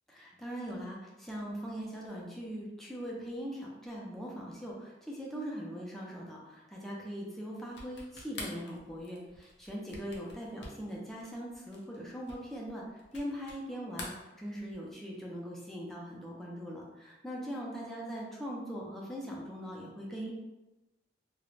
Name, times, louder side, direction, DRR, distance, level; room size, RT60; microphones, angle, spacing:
voice 1, 0.1-14.1 14.4-20.3, equal, ahead, -4 dB, 0.4 m, -41 dB
sound 1, 7.7-13.6 13.9-14.9, left 2 dB, 70° left, 0.5 m, -47 dB
2.4 x 2.0 x 3.1 m, 1.0 s
head